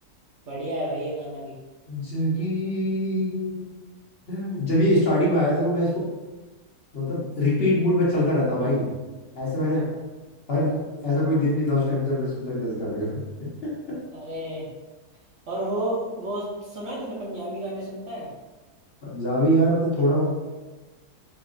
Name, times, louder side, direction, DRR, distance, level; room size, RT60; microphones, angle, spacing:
voice 1, 0.5-1.5 14.1-14.7 15.5-18.3, right 1 dB, 55° right, -5 dB, 1.0 m, -31 dB
voice 2, 1.9-3.7 4.3-6.1 6.9-8.9 9.3-9.9 10.5-14.0 19.0-20.2, equal, 40° left, -7 dB, 1.3 m, -24 dB
4.7 x 2.6 x 2.5 m, 1.2 s
omnidirectional pair, 1.6 m